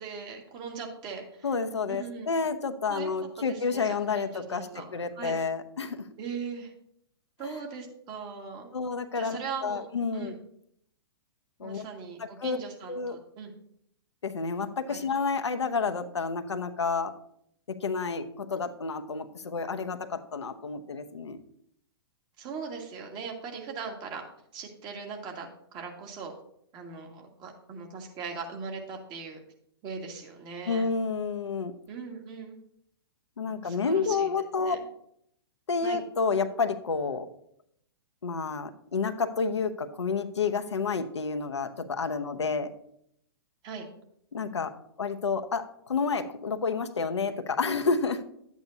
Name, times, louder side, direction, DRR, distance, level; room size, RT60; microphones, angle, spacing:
voice 1, 0.0-1.5 1.9-2.3 2.9-5.3 6.2-6.7 7.4-8.7 9.1-9.8 10.1-10.4 11.6-13.5 14.9-15.0 22.4-24.3 24.5-25.5 25.7-26.3 26.7-29.4 29.8-30.9 31.9-32.6 33.5-34.3 34.6-34.8 35.8-36.0 43.6-43.9, right 5 dB, 30° right, 2 dB, 1.9 m, -39 dB
voice 2, 1.4-6.0 7.4-7.5 8.7-9.4 9.6-10.3 11.6-11.8 12.2-12.6 12.9-13.2 14.2-17.1 17.7-21.4 30.7-31.7 33.4-34.8 35.7-37.3 38.2-42.7 44.3-48.2, left 5 dB, 85° left, 8 dB, 0.8 m, -30 dB
11.5 x 8.4 x 2.8 m, 0.71 s
hypercardioid pair, 120°, 14 cm